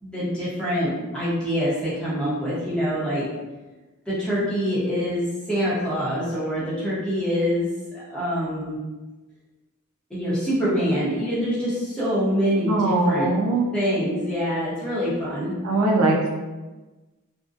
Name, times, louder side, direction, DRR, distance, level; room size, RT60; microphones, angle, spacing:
voice 1, 0.0-3.2 4.1-7.7 8.1-8.8 10.1-13.3 13.7-15.6, equal, 5° left, -10 dB, 0.8 m, -25 dB
voice 2, 12.7-13.7 15.6-16.3, right 2 dB, 65° right, 0 dB, 0.4 m, -21 dB
2.6 x 2.1 x 2.4 m, 1.2 s
head